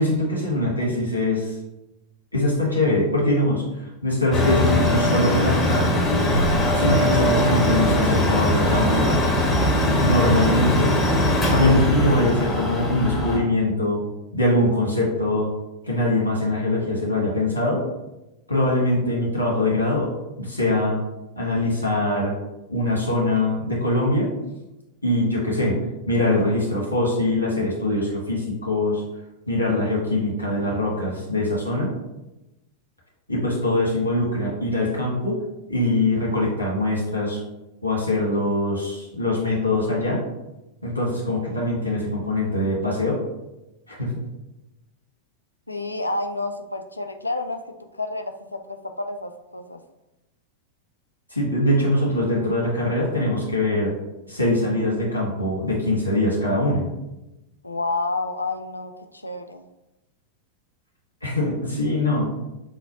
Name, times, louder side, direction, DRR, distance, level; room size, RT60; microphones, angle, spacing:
voice 1, 0.0-1.5 2.3-5.9 6.7-9.1 10.0-10.9 11.5-14.0 14.3-15.5 15.9-17.8 18.5-20.1 20.4-21.0 21.4-22.4 22.7-24.3 25.0-25.8 26.1-29.0 29.5-31.9 33.3-35.4 35.7-37.4 37.8-40.2 40.8-43.2 43.9-44.2 51.3-53.9 54.3-56.8 61.2-62.3, left 1 dB, 90° right, -3 dB, 1.4 m, -22 dB
Mechanical fan, 4.3-13.4, left 1 dB, 20° left, 1.1 m, -21 dB
voice 2, 45.7-47.6 47.9-49.8 57.6-59.6, left 2 dB, 85° left, 6 dB, 0.3 m, -29 dB
6.1 x 2.1 x 2.8 m, 0.96 s
figure-of-eight pair, 90°, 0 cm